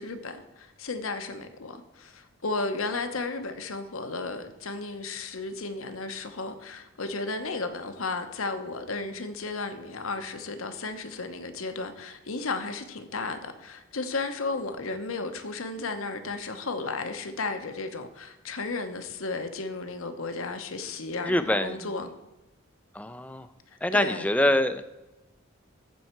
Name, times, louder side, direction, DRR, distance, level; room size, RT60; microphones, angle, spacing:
voice 1, 0.0-22.1 23.9-24.3, left 3 dB, 80° left, 1.0 m, -34 dB
voice 2, 21.2-21.9 22.9-23.5 23.8-24.9, left 1 dB, 5° left, 0.4 m, -25 dB
14.5 x 5.5 x 4.5 m
head